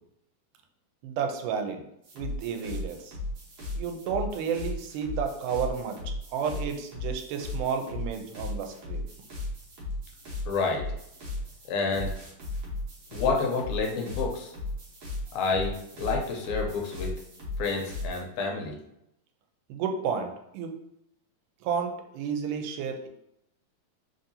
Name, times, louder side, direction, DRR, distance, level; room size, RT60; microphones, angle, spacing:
voice 1, 1.0-1.8 2.1-3.2 3.7-9.1 19.7-20.8 21.6-23.1, right 6 dB, 85° right, 5 dB, 2.1 m, -32 dB
sound 1, 2.0-18.2, left 2 dB, 60° right, 1.6 m, -36 dB
voice 2, 10.5-10.9 11.7-12.1 13.1-14.5 15.3-17.1 17.6-18.8, left 4 dB, 80° left, 1 dB, 1.9 m, -29 dB
4.7 x 2.7 x 2.6 m, 0.79 s
omnidirectional pair, 3.6 m